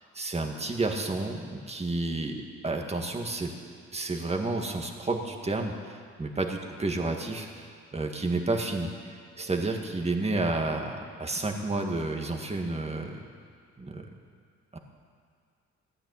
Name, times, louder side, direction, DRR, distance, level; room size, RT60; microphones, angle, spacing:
voice 1, 0.1-3.5 3.9-13.3 13.8-14.1 14.7-14.8, right 2 dB, 20° right, 2 dB, 2.0 m, -31 dB
15.0 x 9.9 x 9.6 m, 2.2 s
cardioid pair, 90°, 30 cm